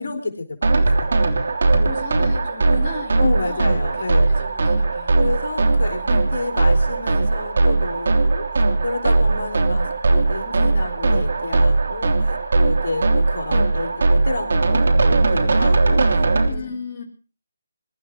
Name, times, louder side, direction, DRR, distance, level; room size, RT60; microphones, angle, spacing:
voice 1, 0.0-1.1 1.8-1.9 3.2-4.4 5.1-9.9 10.1-16.2 16.5-16.8, left 3 dB, 60° left, 4 dB, 3.7 m, -30 dB
sound 1, 0.6-16.5, right 3 dB, 60° right, 3.1 m, -19 dB
voice 2, 1.3-5.2 5.6-6.3 16.3-17.0, left 4 dB, 25° left, -3 dB, 3.9 m, -37 dB
23.5 x 12.5 x 4.6 m, 0.38 s
figure-of-eight pair, 160°, 0 cm